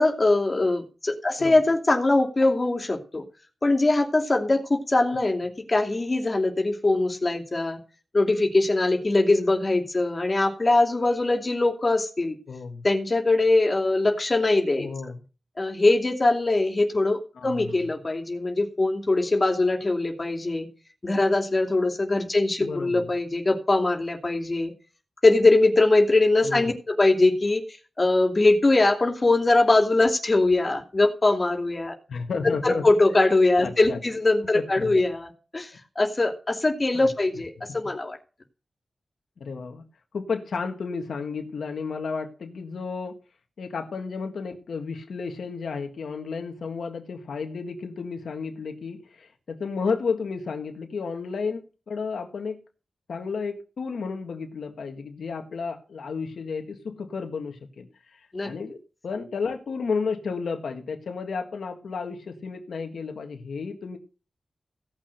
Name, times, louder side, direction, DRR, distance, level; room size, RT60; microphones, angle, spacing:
voice 1, 0.0-3.2 3.6-7.8 8.1-12.4 12.8-14.9 15.6-20.7 21.0-24.7 25.2-27.6 28.0-31.9 32.4-38.2 58.3-58.5, left 2 dB, 40° left, 3 dB, 2.7 m, -22 dB
voice 2, 12.5-12.8 14.8-15.2 17.3-17.7 22.6-23.0 26.4-26.7 32.1-32.8 33.6-34.0 34.5-35.0 36.9-37.1 39.4-39.8 40.1-43.2 43.6-51.6 51.9-52.6 53.1-58.8 59.0-64.0, left 5 dB, 90° left, 5 dB, 1.6 m, -32 dB
16.5 x 6.2 x 6.6 m, 0.35 s
cardioid pair, 50°, 0 cm